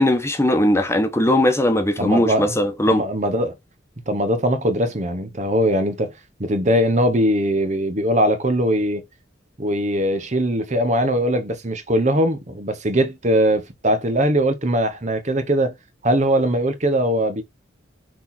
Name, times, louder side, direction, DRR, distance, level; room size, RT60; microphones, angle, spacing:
voice 1, 0.0-3.0, left 1 dB, 15° left, 1.2 m, -19 dB
voice 2, 2.0-2.5 2.9-3.5 4.1-6.1 6.4-9.0 9.6-15.8 16.0-17.4, equal, 40° right, 1.0 m, -21 dB
6.2 x 4.2 x 4.3 m
head